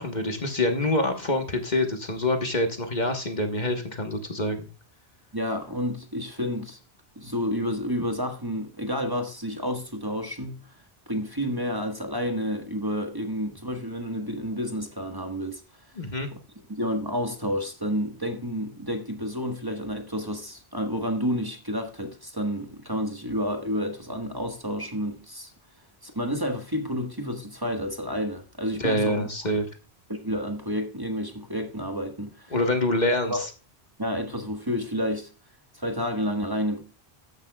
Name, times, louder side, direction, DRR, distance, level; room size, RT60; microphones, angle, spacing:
voice 1, 0.0-4.7 16.0-16.3 28.8-29.7 32.5-33.5, left 1 dB, 45° left, 1.4 m, -26 dB
voice 2, 5.3-6.8 7.1-10.7 11.1-15.6 16.7-25.5 26.0-29.2 30.1-32.5 33.3-33.4 34.0-35.3 35.7-36.8, equal, 20° right, 1.4 m, -30 dB
13.5 x 10.0 x 2.3 m
omnidirectional pair, 1.1 m